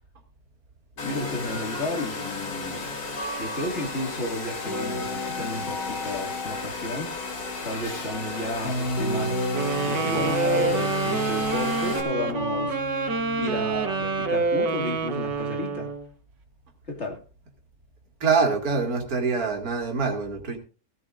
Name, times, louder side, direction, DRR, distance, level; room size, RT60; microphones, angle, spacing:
Domestic sounds home sounds, 1.0-12.0, left 4 dB, 85° left, 2.9 m, -34 dB
sound 1, 1.0-14.3, left 1 dB, 60° left, 6.1 m, -34 dB
voice 1, 1.0-2.9 3.4-7.1 7.6-9.5 9.8-12.8 13.4-15.9 16.9-17.2, left 1 dB, 40° left, 1 dB, 2.4 m, -32 dB
sound 2, 9.5-16.1, right 4 dB, 85° right, 2.0 m, -27 dB
voice 2, 18.2-20.6, right 5 dB, 55° right, 2 dB, 2.6 m, -24 dB
16.5 x 13.5 x 2.5 m, 0.35 s
omnidirectional pair, 1.9 m